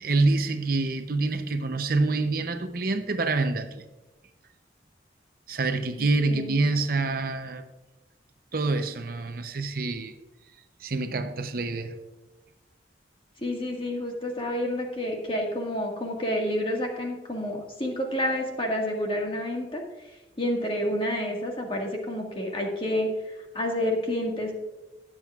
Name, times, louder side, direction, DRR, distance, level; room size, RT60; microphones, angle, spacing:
voice 1, 0.0-3.8 5.5-7.6 8.5-10.1 10.8-11.9, right 3 dB, 55° right, 8 dB, 0.7 m, -26 dB
voice 2, 6.0-6.6 13.4-19.8 20.4-24.5, left 1 dB, 30° left, 1 dB, 1.8 m, -29 dB
19.5 x 7.5 x 2.4 m, 1.1 s
head